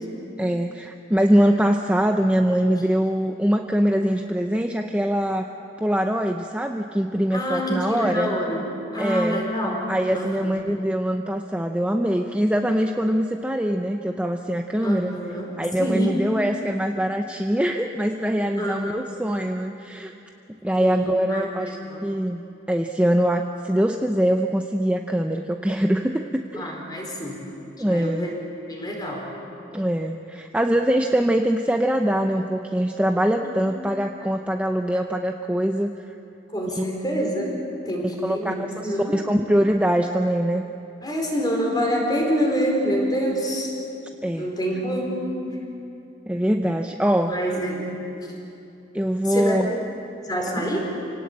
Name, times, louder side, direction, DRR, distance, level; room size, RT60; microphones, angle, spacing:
voice 1, 0.4-5.5 5.8-8.4 9.0-9.4 9.9-15.1 15.6-20.1 20.6-22.4 22.7-26.7 27.8-28.3 29.7-36.1 36.7-36.8 38.0-40.6 44.2-44.5 46.3-47.3 48.9-49.8 50.6-50.7, equal, 5° right, 4 dB, 0.7 m, -23 dB
voice 2, 7.3-8.6 8.9-10.5 14.8-16.2 18.6-19.0 20.8-22.0 26.5-27.4 27.9-28.3 28.7-29.3 33.4-33.5 36.5-37.6 37.8-38.5 38.8-39.3 41.0-43.7 44.4-45.4 47.2-47.9 49.2-49.6 50.2-50.8, equal, 20° left, 0 dB, 4.5 m, -27 dB
28.0 x 18.0 x 8.6 m, 2.8 s
head